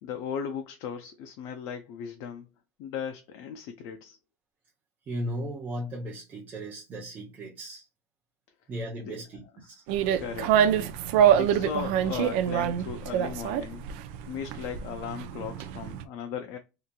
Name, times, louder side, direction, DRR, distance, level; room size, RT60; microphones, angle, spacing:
voice 1, 0.0-2.5 2.8-4.2 9.0-9.2 9.5-9.7 10.2-10.9 11.3-13.9 14.3-16.6, left 7 dB, 60° left, 0.4 m, -37 dB
voice 2, 5.1-7.8 8.7-9.8, equal, 25° right, 0.6 m, -36 dB
sound 1, 9.9-16.0, right 9 dB, 75° right, 0.4 m, -25 dB
2.8 x 2.5 x 2.2 m
cardioid pair, 150°, 7 cm